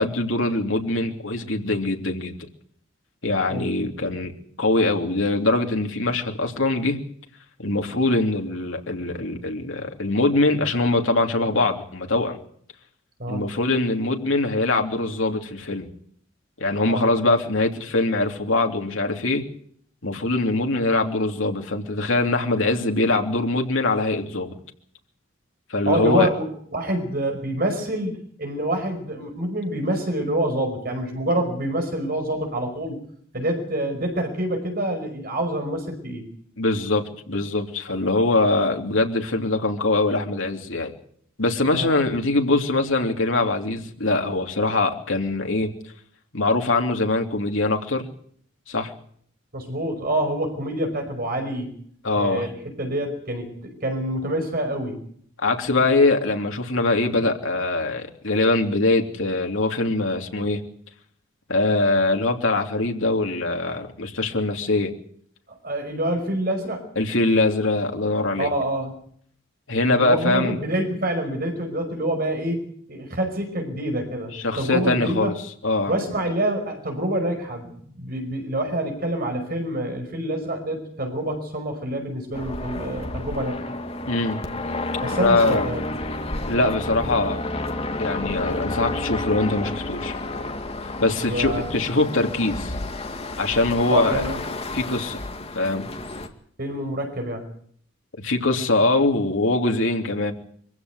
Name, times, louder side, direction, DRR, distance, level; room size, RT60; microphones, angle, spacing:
voice 1, 0.0-2.3 3.2-4.3 4.6-7.0 7.6-12.4 13.3-15.9 16.6-19.4 20.0-24.5 25.7-26.3 36.6-40.9 41.4-45.7 46.3-48.1 48.7-48.9 52.0-52.5 55.4-60.6 61.5-64.9 67.0-68.5 69.7-70.6 74.3-75.3 75.6-75.9 84.0-84.4 85.2-85.7 86.5-87.5 88.0-90.1 91.0-92.7 93.4-94.2 94.7-95.2 95.5-95.9 98.2-100.3, left 2 dB, 75° left, 3 dB, 3.1 m, -22 dB
voice 2, 25.9-33.0 33.3-36.3 41.7-41.9 49.5-51.8 52.1-55.0 65.5-66.8 68.4-68.9 69.9-75.3 75.9-83.7 85.0-85.8 91.2-91.8 93.9-94.4 96.6-97.5, right 1 dB, 45° right, 5 dB, 5.5 m, -27 dB
sound 1, 82.3-96.3, left 2 dB, 30° left, 2.1 m, -30 dB
24.0 x 16.0 x 8.1 m, 0.62 s
head